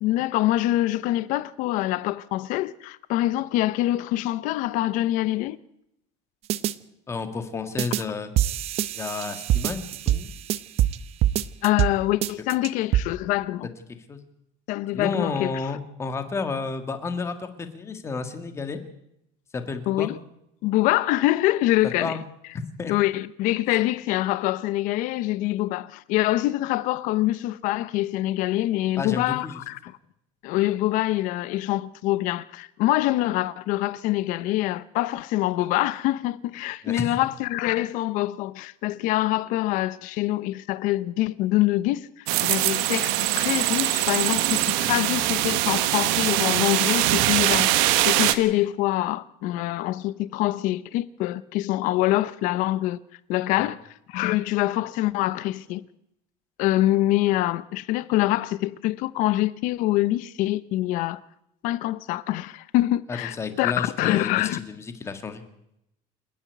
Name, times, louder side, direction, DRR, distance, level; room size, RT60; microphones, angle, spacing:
voice 1, 0.0-5.6 11.6-13.7 14.7-15.5 19.9-20.2 20.6-22.2 22.9-29.9 30.4-53.0 53.3-53.8 54.1-55.8 56.6-61.2 61.6-64.6, left 16 dB, 55° left, 0.8 m, -25 dB
sound 1, 6.5-6.7 7.8-8.0 8.4-11.0 11.2-11.9 12.2-13.0, right 12 dB, 40° right, 0.7 m, -24 dB
voice 2, 7.1-8.3 9.0-10.3 13.6-13.7 14.1-14.2 14.9-18.8 19.5-20.1 21.8-22.2 22.5-22.9 29.0-29.6 36.8-37.2 53.6-53.7 63.1-65.4, left 4 dB, 15° left, 1.8 m, -31 dB
sound 2, 42.3-48.4, right 15 dB, 80° right, 1.4 m, -22 dB
28.0 x 10.0 x 9.4 m
cardioid pair, 170°, 16 cm